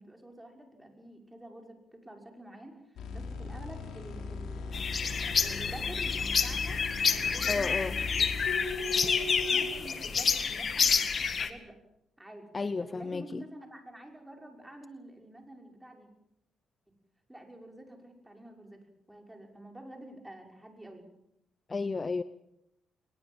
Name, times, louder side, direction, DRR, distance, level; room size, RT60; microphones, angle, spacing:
voice 1, 0.0-2.8 3.1-4.8 5.4-6.8 7.1-8.3 8.8-9.1 9.5-11.8 12.2-12.5 12.8-16.1 17.3-21.0, right 1 dB, 10° right, 2 dB, 6.1 m, -48 dB
sound 1, 3.0-9.7, left 4 dB, 75° left, 4.3 m, -38 dB
sound 2, 4.7-11.5, left 6 dB, 45° left, 2.0 m, -29 dB
voice 2, 7.5-8.0 12.5-13.4 21.7-22.2, left 4 dB, 30° left, 14 dB, 0.9 m, -32 dB
22.5 x 21.0 x 7.4 m, 0.79 s
cardioid pair, 90°, 0 cm